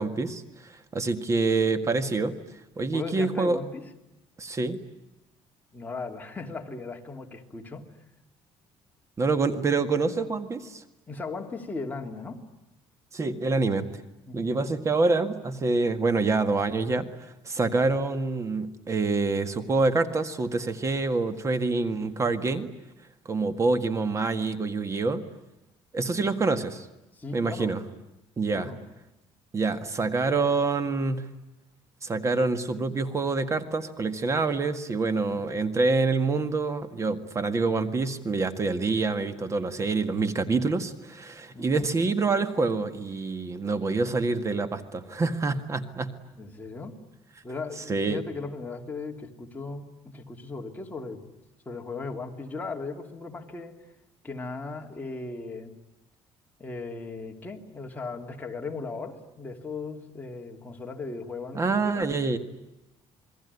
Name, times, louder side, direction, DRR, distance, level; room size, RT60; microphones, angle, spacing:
voice 1, 0.0-2.4 2.8-3.6 4.4-4.8 9.2-10.8 13.1-13.9 14.3-22.7 23.3-25.3 25.9-26.9 27.3-27.8 28.4-28.7 29.5-31.3 32.0-46.2 47.9-48.2 61.5-62.4, right 3 dB, 25° right, 10 dB, 1.8 m, -26 dB
voice 2, 2.9-3.8 5.7-7.9 11.1-12.4 14.3-14.5 27.2-27.8 28.5-28.8 41.5-41.9 46.3-47.0 47.4-51.2 51.6-53.8 54.2-55.7 56.6-62.0, left 3 dB, 15° left, 2 dB, 3.0 m, -37 dB
28.5 x 21.0 x 9.7 m, 0.93 s
cardioid pair, 135°, 11 cm